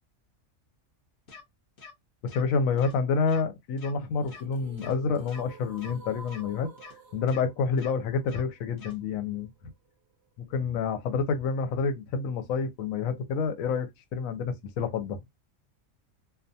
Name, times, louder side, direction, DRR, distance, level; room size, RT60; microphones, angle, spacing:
sound 1, 1.3-1.4 1.8-1.9 2.3-2.4 2.8-2.9 3.3-3.4 3.8-3.9 4.3-4.4 4.8-4.9 5.3-5.4 5.8-5.9 6.3-6.4 6.8-6.9 7.3-7.4 7.8-7.9 8.3-8.4 8.8-8.9, left 5 dB, 50° left, 0.8 m, -46 dB
voice 1, 2.2-6.7 7.1-9.5 10.5-15.2, left 5 dB, 85° left, 1.0 m, -28 dB
sound 2, 4.0-10.0, right 2 dB, 55° right, 0.8 m, -50 dB
2.4 x 2.2 x 2.6 m
omnidirectional pair, 1.4 m